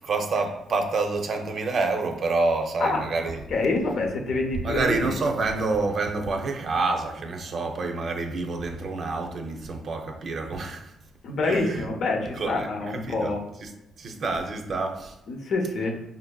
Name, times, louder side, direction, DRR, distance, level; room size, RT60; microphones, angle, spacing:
voice 1, 0.0-3.4 4.6-10.9 11.4-11.9 12.3-13.3 13.6-13.7 14.0-15.2, right 3 dB, 55° right, 0.5 m, -28 dB
voice 2, 3.5-5.1 11.2-13.4 15.3-16.0, left 3 dB, 65° left, 0.7 m, -26 dB
5.3 x 2.6 x 2.3 m
cardioid pair, 90°, 0 cm